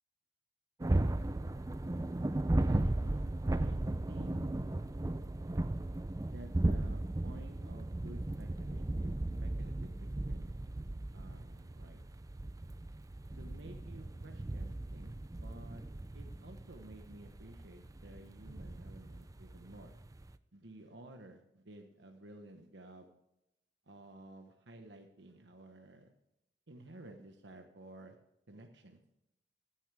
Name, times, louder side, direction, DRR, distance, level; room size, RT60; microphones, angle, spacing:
sound 1, 0.8-20.4, right 1 dB, 20° right, 0.4 m, -36 dB
voice 1, 2.7-3.8 4.1-4.4 6.3-10.4 11.1-12.0 13.3-15.8 16.1-20.0 20.5-23.1 23.9-26.1 26.7-28.2 28.5-29.0, right 1 dB, 75° right, 4 dB, 1.2 m, -53 dB
15.0 x 10.0 x 3.4 m, 0.85 s
head